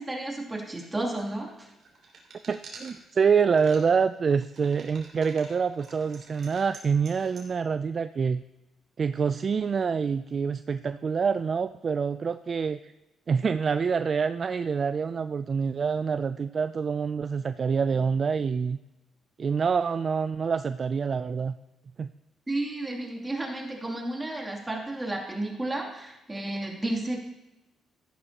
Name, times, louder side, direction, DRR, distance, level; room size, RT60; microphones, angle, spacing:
voice 1, 0.0-1.7 22.5-27.2, right 2 dB, 15° right, -1 dB, 2.8 m, -32 dB
sound 1, 0.7-3.2 3.6-3.8 4.1-7.5, right 4 dB, 60° right, 3.0 m, -49 dB
voice 2, 2.5-8.4 9.0-12.9 13.3-18.8 19.4-21.6 22.0-22.1, right 6 dB, 45° right, 11 dB, 0.3 m, -26 dB
14.0 x 11.0 x 2.9 m, 0.98 s
cardioid pair, 90°, 0 cm